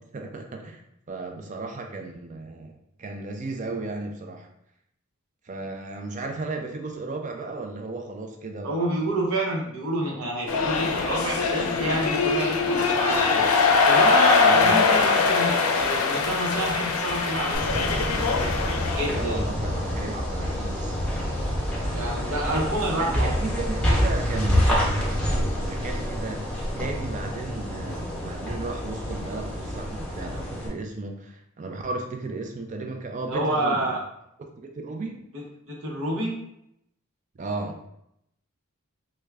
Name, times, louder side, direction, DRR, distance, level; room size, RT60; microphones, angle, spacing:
voice 1, 0.1-0.8 1.1-2.7 3.0-4.5 5.4-9.0 14.4-14.8 19.1-21.1 23.0-33.9 34.4-35.3 37.4-37.8, right 3 dB, 35° right, 4 dB, 0.4 m, -35 dB
voice 2, 8.6-13.5 13.9-18.2 19.0-19.4 21.9-23.3 33.3-34.0 35.3-36.3, right 1 dB, 75° right, -3 dB, 0.8 m, -28 dB
sound 1, 10.5-19.2, left 4 dB, 80° left, 0.5 m, -22 dB
sound 2, 17.5-30.7, equal, 5° left, 0.8 m, -27 dB
3.4 x 2.2 x 3.3 m, 0.78 s
head